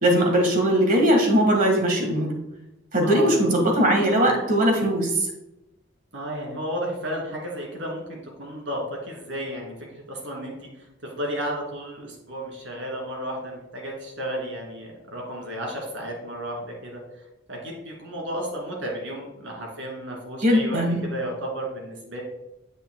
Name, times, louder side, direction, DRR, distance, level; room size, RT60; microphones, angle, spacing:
voice 1, 0.0-2.3 2.9-5.1 20.4-21.0, equal, 45° right, 1 dB, 1.6 m, -20 dB
voice 2, 3.0-3.4 6.1-10.5 11.0-17.0 17.5-22.2, right 1 dB, 80° right, -1 dB, 2.5 m, -33 dB
8.9 x 8.0 x 2.2 m, 0.91 s
head